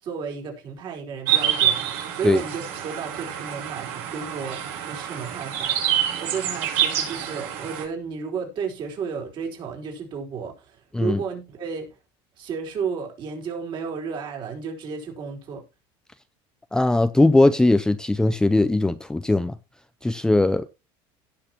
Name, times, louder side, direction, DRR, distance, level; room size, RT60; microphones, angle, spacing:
voice 1, 0.0-5.9 6.2-11.9 12.4-15.6, right 6 dB, 45° right, 4.6 m, -33 dB
sound 1, 1.3-7.8, right 10 dB, 70° right, 6.2 m, -26 dB
voice 2, 16.7-19.6 20.0-20.7, left 2 dB, 5° left, 0.5 m, -19 dB
17.0 x 6.5 x 2.9 m
cardioid pair, 130°, 11 cm